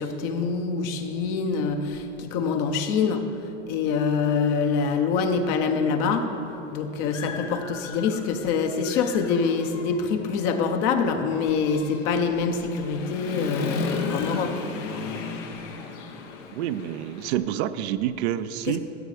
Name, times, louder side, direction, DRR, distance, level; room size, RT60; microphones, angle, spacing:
voice 1, 0.0-3.3 3.7-6.2 6.7-14.5 18.7-18.8, left 5 dB, 50° left, 6 dB, 1.0 m, -25 dB
Human voice / Motorcycle, 6.1-6.2 6.7-8.4 8.8-17.4, left 4 dB, 75° left, 1.1 m, -35 dB
voice 2, 16.5-18.8, right 11 dB, 60° right, 12 dB, 0.5 m, -28 dB
14.0 x 8.1 x 3.3 m, 2.9 s
hypercardioid pair, 100°, 37 cm